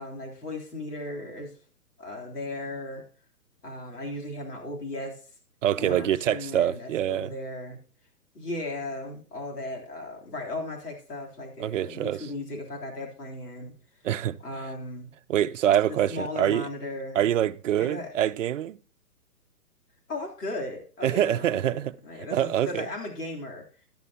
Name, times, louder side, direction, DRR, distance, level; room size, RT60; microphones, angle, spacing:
voice 1, 0.0-1.6 2.0-3.0 3.6-5.3 5.8-7.8 8.3-13.8 14.4-15.1 15.9-17.3 17.7-18.1 20.1-23.6, left 2 dB, 75° left, 3.6 m, -36 dB
voice 2, 5.6-7.3 11.6-12.3 14.0-14.4 15.3-16.7 17.2-18.8 21.0-21.9 22.3-22.9, right 11 dB, 55° right, 0.6 m, -25 dB
13.0 x 12.0 x 2.9 m
hypercardioid pair, 135°, 47 cm